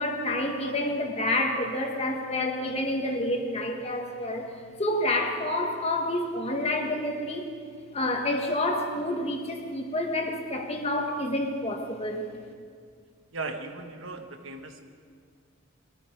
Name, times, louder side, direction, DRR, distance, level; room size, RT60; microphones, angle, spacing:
voice 1, 0.0-4.5 4.8-7.5 7.9-12.3, left 1 dB, 30° left, 2 dB, 1.6 m, -28 dB
voice 2, 13.3-14.8, right 3 dB, 70° right, 5 dB, 1.3 m, -37 dB
20.5 x 13.5 x 4.6 m, 2.1 s
head